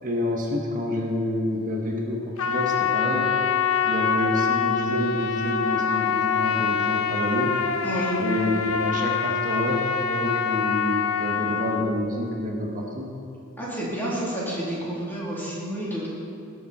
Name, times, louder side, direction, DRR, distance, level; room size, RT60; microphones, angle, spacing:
voice 1, 0.0-3.4 3.8-7.6 8.2-13.1, left 1 dB, 40° right, 0 dB, 1.3 m, -28 dB
Trumpet, 2.4-11.9, left 6 dB, 80° left, 0.6 m, -25 dB
voice 2, 7.8-8.1 13.6-16.1, right 1 dB, 10° left, -8 dB, 3.2 m, -30 dB
18.0 x 7.2 x 4.3 m, 2.6 s
head